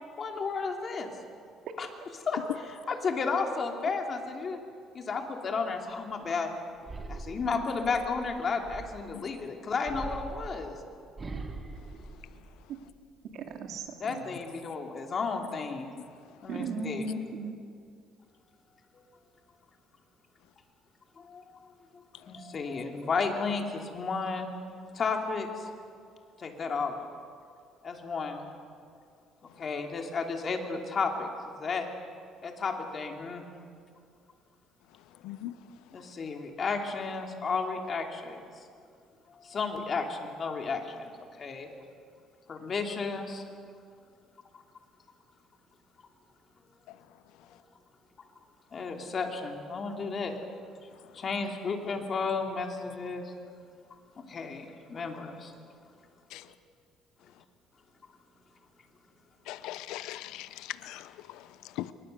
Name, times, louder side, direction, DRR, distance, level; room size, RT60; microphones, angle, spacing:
voice 1, 0.2-1.1 1.8-1.9 2.3-2.4 2.9-4.6 4.9-6.5 7.1-10.7 14.0-15.9 16.4-17.0 18.9-19.1 21.2-21.4 21.9-24.5 24.9-25.7 26.4-27.0 27.8-28.4 29.4-31.9 32.4-33.4 35.9-38.5 39.3-41.1 41.4-41.7 42.5-43.4 48.7-50.3 51.1-53.3 54.3-55.5 56.3-56.4, left 4 dB, 35° left, 2.9 m, -33 dB
sound 1, 6.8-9.2 9.8-12.9 13.3-13.9, right 3 dB, 25° right, 2.2 m, -42 dB
voice 2, 13.3-14.3 16.5-17.5, right 3 dB, 60° right, 2.8 m, -36 dB
voice 3, 35.2-35.6 46.9-47.0 56.3-56.5 59.5-61.9, left 14 dB, 85° left, 0.8 m, -40 dB
27.0 x 22.5 x 6.8 m
cardioid pair, 135°, 0 cm